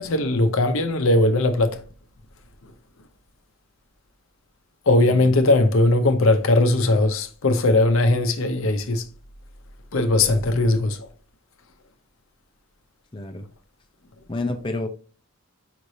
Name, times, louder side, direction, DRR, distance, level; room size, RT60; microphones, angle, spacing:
voice 1, 0.0-1.8 4.9-9.0 9.9-11.1, left 2 dB, 70° left, 0.7 m, -19 dB
voice 2, 13.1-13.5 14.3-14.9, left 2 dB, 20° left, 0.6 m, -29 dB
5.1 x 3.2 x 2.7 m
head